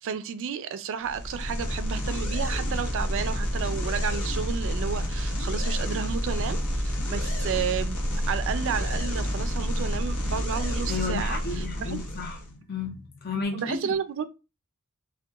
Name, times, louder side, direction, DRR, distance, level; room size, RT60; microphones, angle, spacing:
voice 1, 0.0-8.0 8.3-12.0 13.5-14.2, right 7 dB, 60° right, 0.3 m, -32 dB
sound 1, 1.0-12.5, equal, 80° left, 0.8 m, -29 dB
voice 2, 10.9-13.8, left 4 dB, 45° left, 0.6 m, -33 dB
2.7 x 2.2 x 2.3 m
head